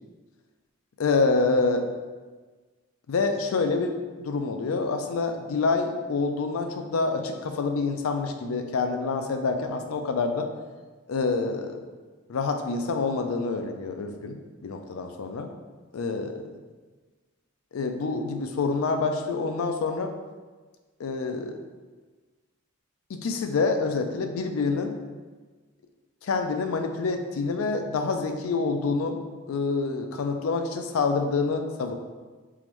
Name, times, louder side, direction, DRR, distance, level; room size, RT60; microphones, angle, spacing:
voice 1, 1.0-1.8 3.1-10.5 11.1-11.8 12.3-15.5 15.9-16.5 17.7-20.1 21.0-21.6 23.1-25.0 26.2-29.2 29.5-31.9, left 4 dB, 90° left, 6 dB, 0.4 m, -27 dB
3.7 x 3.0 x 3.1 m, 1.4 s
head